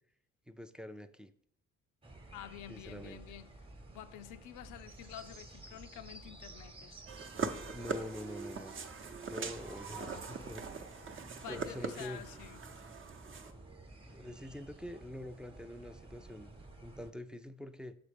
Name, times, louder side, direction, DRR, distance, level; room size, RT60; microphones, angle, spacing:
voice 1, 0.5-1.3 2.7-3.2 7.7-8.7 9.3-10.7 11.5-12.2 14.1-17.9, left 1 dB, 5° right, 0.4 m, -45 dB
sound 1, 2.0-17.1, right 2 dB, 20° right, 0.9 m, -53 dB
voice 2, 2.3-3.5 3.9-7.0 9.9-10.2 11.4-12.6, left 11 dB, 85° left, 0.5 m, -49 dB
sound 2, 7.1-13.5, right 5 dB, 40° right, 0.7 m, -42 dB
6.4 x 4.1 x 5.0 m
cardioid pair, 90°, 30 cm